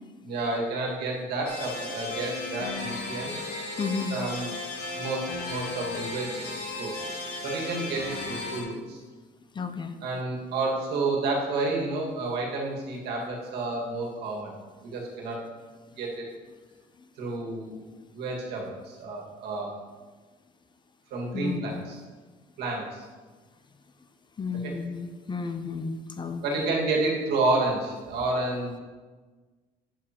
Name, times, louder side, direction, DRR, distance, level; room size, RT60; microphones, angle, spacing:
voice 1, 0.2-3.3 4.1-4.5 4.9-9.0 10.0-14.5 14.8-15.4 16.0-16.3 17.2-17.8 18.1-19.7 21.1-22.0 22.6-23.1 24.6-24.7 26.4-28.8, right 2 dB, 75° right, -2 dB, 1.9 m, -30 dB
sound 1, 1.5-8.6, left 2 dB, 65° left, 1.9 m, -35 dB
voice 2, 3.8-4.2 9.6-10.0 21.3-21.9 24.4-26.7, left 4 dB, 25° left, 8 dB, 0.5 m, -32 dB
8.5 x 7.0 x 2.9 m, 1.4 s
cardioid pair, 110°, 17 cm